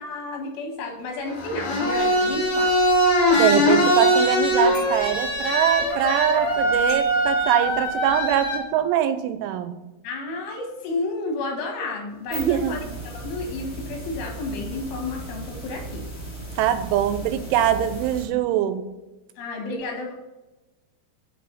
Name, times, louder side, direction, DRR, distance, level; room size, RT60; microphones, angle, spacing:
voice 1, 0.0-2.7 4.9-5.1 10.0-12.8 13.0-16.0 19.4-20.1, left 3 dB, 80° left, 2 dB, 4.4 m, -31 dB
sound 1, 1.3-8.6, equal, 55° left, 3.4 m, -21 dB
voice 2, 3.3-9.8 12.3-12.8 16.6-18.9, right 10 dB, 90° right, 10 dB, 3.1 m, -23 dB
sound 2, 12.1-18.2, right 1 dB, 35° left, 2.7 m, -36 dB
8.6 x 5.5 x 5.5 m, 1.1 s
omnidirectional pair, 5.5 m